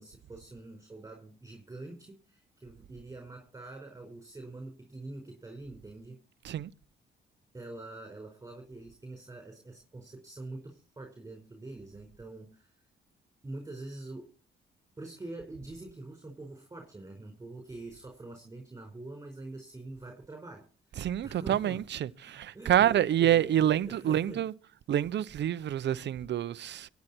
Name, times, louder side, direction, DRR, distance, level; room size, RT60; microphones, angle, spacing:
voice 1, 0.0-6.2 7.5-12.8 13.4-14.3 15.0-21.8 22.2-24.5, right 2 dB, 15° right, 5.0 m, -45 dB
voice 2, 21.0-24.5 24.9-26.9, right 11 dB, 65° right, 0.8 m, -27 dB
22.5 x 9.5 x 4.4 m
cardioid pair, 90°, 20 cm